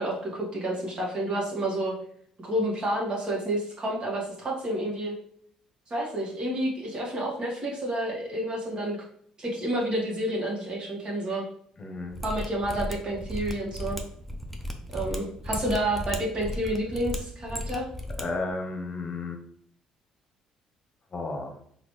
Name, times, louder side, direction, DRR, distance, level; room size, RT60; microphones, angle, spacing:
voice 1, 0.0-2.0 2.4-5.1 5.9-9.0 9.4-11.4 12.2-14.0 14.9-17.9, right 1 dB, 40° right, -2 dB, 1.5 m, -29 dB
voice 2, 11.8-12.2 18.2-19.4 21.1-21.5, left 3 dB, 35° left, 4 dB, 0.9 m, -33 dB
Mechanisms, 12.1-18.2 18.5-18.6, left 1 dB, ahead, 0.6 m, -35 dB
3.8 x 2.5 x 3.1 m, 0.64 s
supercardioid pair, 70°, 2 cm